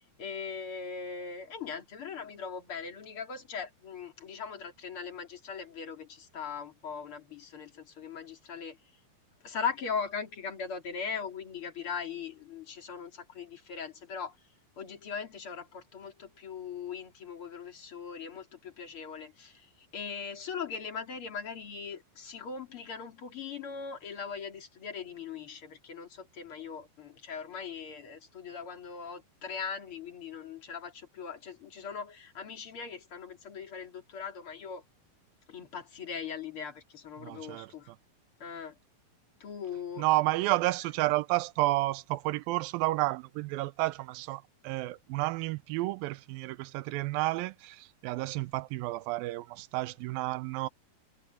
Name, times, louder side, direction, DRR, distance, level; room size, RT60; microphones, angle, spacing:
voice 1, 0.2-8.8 9.4-14.4 14.8-34.8 35.5-37.9 38.4-38.7 39.4-40.0, left 6 dB, 40° left, 3.3 m, -40 dB
voice 2, 37.2-38.0 40.0-50.7, right 19 dB, 80° right, 2.3 m, -31 dB
omnidirectional pair, 4.2 m